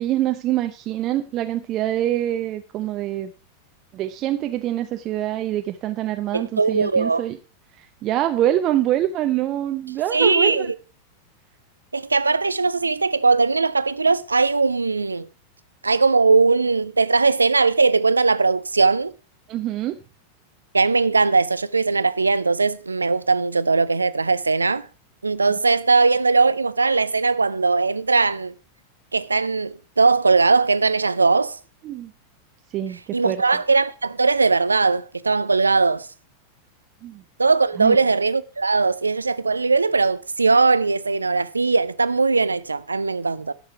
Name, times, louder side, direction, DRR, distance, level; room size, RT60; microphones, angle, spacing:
voice 1, 0.0-3.3 3.9-7.4 7.8-10.7 19.5-20.0 31.8-32.1 32.7-33.4 37.0-37.2 37.8-38.0, right 13 dB, 35° right, 0.7 m, -25 dB
voice 2, 6.3-7.2 10.1-10.7 11.9-15.3 15.8-19.1 20.7-24.9 25.2-28.5 29.1-31.6 33.1-36.1 37.4-43.5, right 4 dB, 80° right, 0.5 m, -19 dB
12.0 x 6.4 x 5.8 m
figure-of-eight pair, 90°, 0 cm